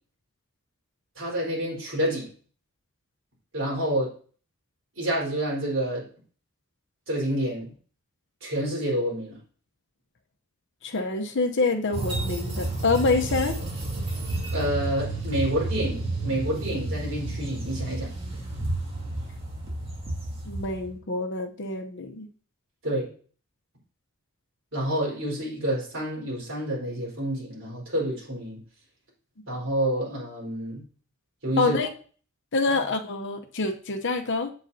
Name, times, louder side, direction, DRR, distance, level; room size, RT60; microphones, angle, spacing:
voice 1, 1.2-2.3 3.5-4.1 5.0-6.1 7.1-7.7 8.4-9.4 14.5-18.1 22.8-23.1 24.7-28.6 29.5-30.8 31.4-31.8, right 1 dB, 65° right, -3 dB, 4.3 m, -28 dB
voice 2, 10.8-13.6 20.5-22.3 31.6-31.9 32.5-34.5, left 3 dB, 60° left, 7 dB, 0.9 m, -26 dB
sound 1, 11.9-21.0, right 2 dB, 30° right, 2.4 m, -31 dB
8.1 x 7.9 x 2.8 m, 0.41 s
head